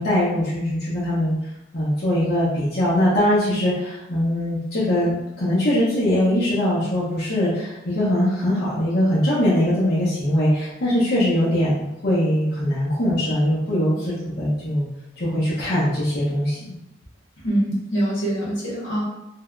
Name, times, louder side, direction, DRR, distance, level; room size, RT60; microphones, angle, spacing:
voice 1, 0.0-1.3 1.7-14.9 15.2-16.7, left 1 dB, 55° left, -9 dB, 0.7 m, -21 dB
voice 2, 17.4-19.0, right 1 dB, 80° left, -5 dB, 1.1 m, -24 dB
3.3 x 2.1 x 2.4 m, 0.89 s
head